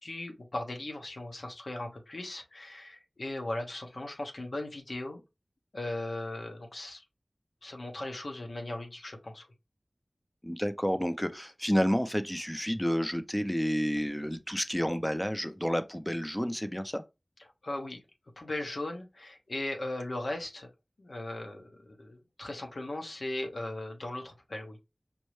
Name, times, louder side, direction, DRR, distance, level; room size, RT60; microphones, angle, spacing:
voice 1, 0.0-5.2 5.7-7.0 7.6-9.5 17.6-18.0 18.4-20.7 21.0-24.8, left 1 dB, 80° left, 1.0 m, -38 dB
voice 2, 10.4-17.0, equal, 10° left, 0.5 m, -30 dB
5.3 x 2.1 x 3.1 m
wide cardioid pair, 60°, 0 cm